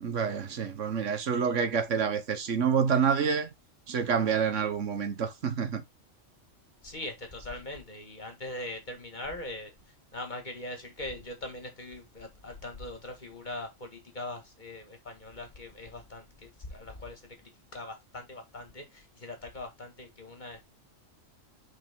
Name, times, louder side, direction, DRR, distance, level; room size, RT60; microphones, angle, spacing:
voice 1, 0.0-3.5 3.9-5.8, right 6 dB, 70° right, 1.4 m, -28 dB
voice 2, 6.8-9.7 10.1-20.6, left 2 dB, 35° left, 2.0 m, -41 dB
6.8 x 5.3 x 3.6 m
omnidirectional pair, 1.3 m